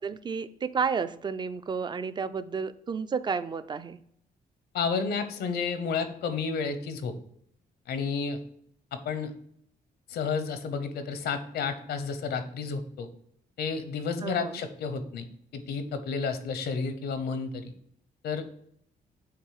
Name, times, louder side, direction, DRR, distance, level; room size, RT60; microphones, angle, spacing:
voice 1, 0.0-4.0 14.2-14.6, right 5 dB, 30° right, 13 dB, 0.4 m, -31 dB
voice 2, 4.7-7.1 7.9-8.4 8.9-9.3 10.1-13.1 13.6-15.3 15.5-17.7 18.2-18.4, left 5 dB, 85° left, 10 dB, 0.8 m, -31 dB
7.3 x 3.0 x 4.8 m, 0.68 s
cardioid pair, 110°, 16 cm